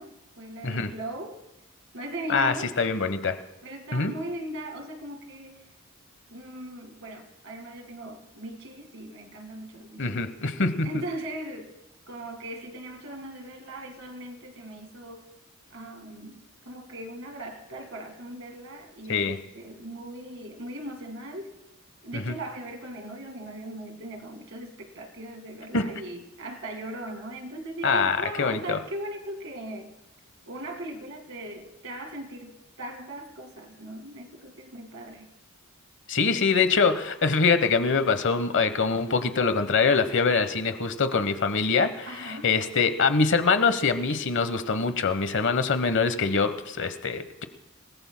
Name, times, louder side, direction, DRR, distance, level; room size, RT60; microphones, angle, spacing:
voice 1, 0.0-1.4 1.9-2.7 3.6-5.7 6.3-10.2 10.8-11.7 12.1-15.3 15.7-21.5 22.0-29.9 30.5-35.3 42.1-42.5, right 1 dB, 65° right, 5 dB, 2.0 m, -39 dB
voice 2, 2.3-3.4 3.9-4.2 10.0-10.9 19.1-19.4 22.1-22.4 25.7-26.0 27.8-28.8 36.1-47.4, left 4 dB, 60° left, 10 dB, 1.1 m, -24 dB
29.0 x 19.0 x 2.2 m, 0.99 s
head